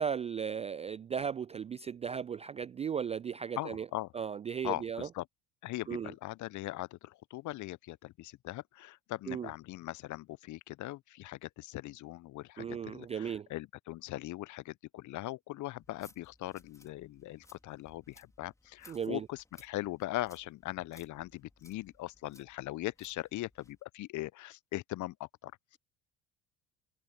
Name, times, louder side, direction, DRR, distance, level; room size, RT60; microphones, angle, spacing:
voice 1, 0.0-3.9 4.1-5.1 5.9-6.1 9.3-9.5 12.6-13.5 18.9-19.3, right 7 dB, 15° right, 0.4 m, -36 dB
voice 2, 3.6-4.1 4.6-5.3 5.6-25.8, left 17 dB, 40° left, 0.9 m, -40 dB
sound 1, 15.8-23.8, left 1 dB, 5° left, 4.5 m, -62 dB
figure-of-eight pair, 65°, 44 cm